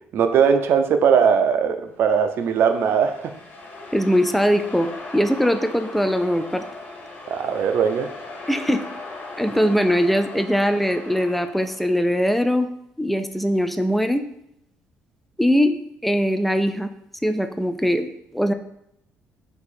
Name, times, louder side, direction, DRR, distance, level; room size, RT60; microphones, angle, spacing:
voice 1, 0.1-3.3 7.3-8.1, right 7 dB, 60° right, 7 dB, 0.5 m, -19 dB
sound 1, 2.2-12.1, left 2 dB, 55° left, 1.1 m, -38 dB
voice 2, 3.9-6.7 8.5-8.8 9.4-12.7 13.0-14.2 15.4-15.8 16.0-16.9 17.2-18.5, equal, ahead, 8 dB, 0.3 m, -21 dB
4.7 x 2.6 x 4.1 m, 0.78 s
cardioid pair, 115°, 4 cm